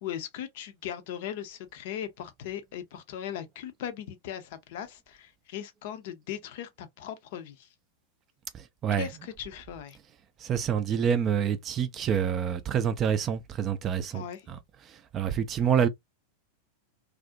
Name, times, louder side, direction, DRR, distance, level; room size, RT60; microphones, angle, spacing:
voice 1, 0.0-7.7 8.9-10.0 14.1-14.5, left 10 dB, 50° left, 0.5 m, -38 dB
voice 2, 10.4-14.6 15.1-15.9, right 8 dB, 30° right, 0.3 m, -27 dB
2.4 x 2.0 x 2.5 m
figure-of-eight pair, 90°, 0 cm